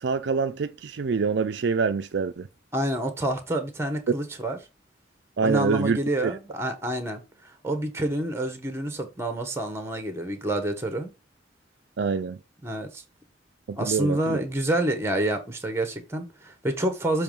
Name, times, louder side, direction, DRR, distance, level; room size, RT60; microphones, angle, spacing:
voice 1, 0.0-2.5 5.4-6.3 12.0-12.4 13.7-14.4, right 5 dB, 60° right, 0.4 m, -26 dB
voice 2, 2.7-4.6 5.4-11.1 12.6-13.0 13.8-17.2, right 1 dB, 15° right, 1.1 m, -28 dB
6.8 x 3.2 x 5.2 m
head